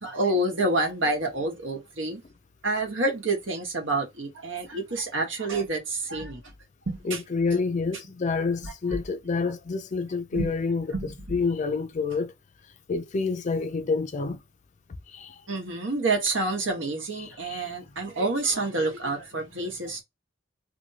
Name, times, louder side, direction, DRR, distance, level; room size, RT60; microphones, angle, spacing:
voice 1, 0.0-2.2 2.6-6.4 6.9-7.2 8.6-8.7 10.3-10.5 10.9-11.1 15.5-20.0, right 2 dB, 80° right, 1.3 m, -28 dB
voice 2, 7.0-10.9 11.3-12.3 12.9-14.4 15.1-15.4 17.2-17.7, left 4 dB, 40° left, 0.4 m, -28 dB
2.8 x 2.7 x 2.7 m
head